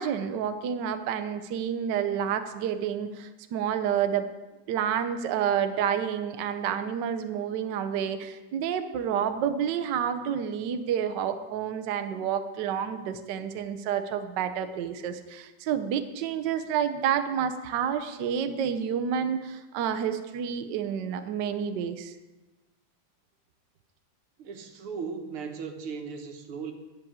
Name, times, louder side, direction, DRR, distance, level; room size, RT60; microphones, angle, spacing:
voice 1, 0.0-4.2 4.7-22.1, right 8 dB, 65° right, 8 dB, 1.2 m, -29 dB
voice 2, 24.4-26.7, right 5 dB, 85° right, 5 dB, 2.0 m, -37 dB
10.5 x 6.2 x 8.7 m, 1.1 s
omnidirectional pair, 2.3 m